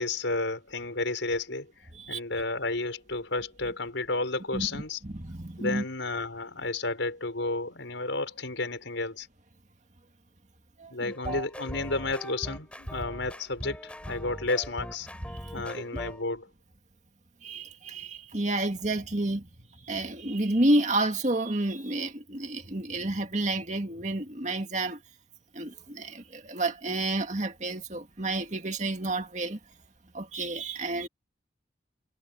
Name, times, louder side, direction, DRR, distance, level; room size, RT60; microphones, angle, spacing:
voice 1, 0.0-1.7 2.1-5.0 5.6-9.3 10.9-15.1 15.5-16.5, left 3 dB, 85° left, 5.7 m, -32 dB
voice 2, 4.5-5.8 10.8-11.4 15.3-15.9 17.4-19.5 19.8-25.0 25.5-29.6 30.1-31.1, right 2 dB, 40° right, 2.2 m, -30 dB
sound 1, 11.1-16.2, equal, 5° left, 4.9 m, -40 dB
head